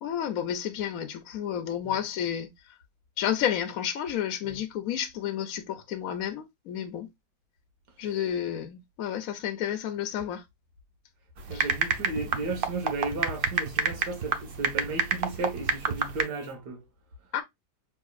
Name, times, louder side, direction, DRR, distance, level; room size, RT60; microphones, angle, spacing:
voice 1, 0.0-2.5 3.2-7.1 8.0-10.4 11.5-11.7 17.3-17.4, left 10 dB, 65° left, 1.0 m, -31 dB
sound 1, 11.4-16.2, right 5 dB, 55° right, 0.6 m, -29 dB
voice 2, 11.5-16.8, right 3 dB, 80° right, 2.0 m, -34 dB
5.7 x 3.5 x 2.4 m
omnidirectional pair, 1.8 m